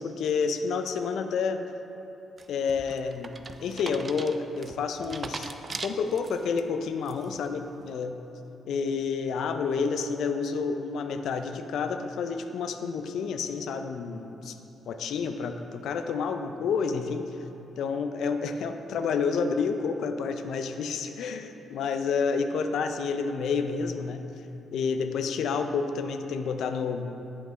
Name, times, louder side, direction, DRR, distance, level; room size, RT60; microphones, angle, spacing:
voice 1, 0.0-1.6 2.5-3.3 3.6-5.5 5.8-8.2 8.7-14.6 14.9-17.4 17.8-24.2 24.7-27.1, left 5 dB, 75° left, 7 dB, 0.4 m, -29 dB
sound 1, 2.4-6.6 7.0-7.5, right 4 dB, 40° right, 0.4 m, -40 dB
7.8 x 5.3 x 3.6 m, 2.9 s
supercardioid pair, 65°, 0 cm